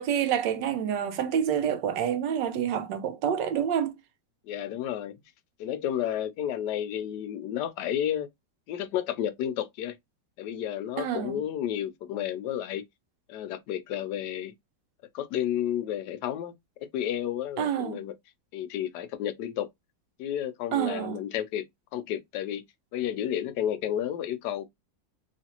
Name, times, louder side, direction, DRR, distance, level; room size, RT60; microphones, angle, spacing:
voice 1, 0.0-4.0 11.0-11.4 17.6-18.0 20.7-21.2, right 9 dB, 75° right, 1.2 m, -28 dB
voice 2, 4.5-5.2 5.6-8.3 8.7-9.9 10.4-12.8 13.3-14.5 15.1-16.5 16.9-18.1 18.5-19.7 20.2-21.6 21.9-22.6 22.9-24.7, left 10 dB, 75° left, 1.1 m, -31 dB
3.2 x 3.1 x 2.8 m
omnidirectional pair, 2.0 m